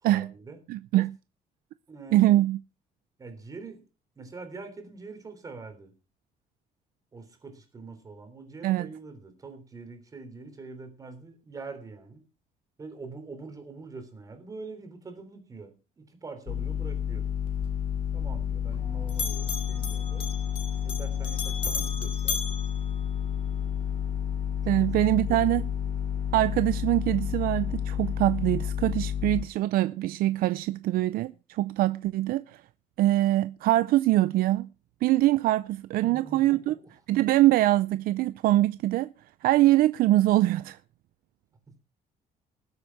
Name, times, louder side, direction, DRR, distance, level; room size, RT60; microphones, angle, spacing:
voice 1, 0.0-0.6 1.9-2.4 3.2-3.8 4.2-5.9 7.1-12.2 12.8-17.3 18.1-20.3 20.8-22.6 24.6-24.7 25.3-25.5 36.0-36.6 41.7-41.8, right 4 dB, 25° right, 3.4 m, -44 dB
voice 2, 0.7-1.2 2.1-2.6 8.6-8.9 24.7-25.6 26.3-32.6 33.0-34.7 35.0-36.7 37.1-39.1 39.4-40.8, right 15 dB, 85° right, 0.6 m, -23 dB
sound 1, 16.5-29.4, left 9 dB, 60° left, 1.2 m, -30 dB
Bell, 17.5-18.8 19.1-23.6, left 6 dB, 40° left, 3.6 m, -36 dB
sound 2, 18.8-28.7, left 4 dB, 15° left, 3.2 m, -51 dB
20.0 x 8.1 x 4.6 m
cardioid pair, 170°, 15 cm